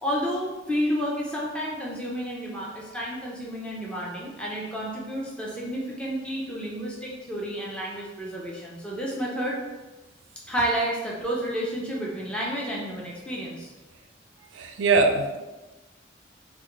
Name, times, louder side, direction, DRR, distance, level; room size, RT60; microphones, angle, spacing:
voice 1, 0.0-9.6 10.5-13.7, equal, 5° left, -4 dB, 0.4 m, -30 dB
voice 2, 14.5-15.4, right 3 dB, 80° right, 5 dB, 0.4 m, -22 dB
3.6 x 2.1 x 2.9 m, 1.1 s
head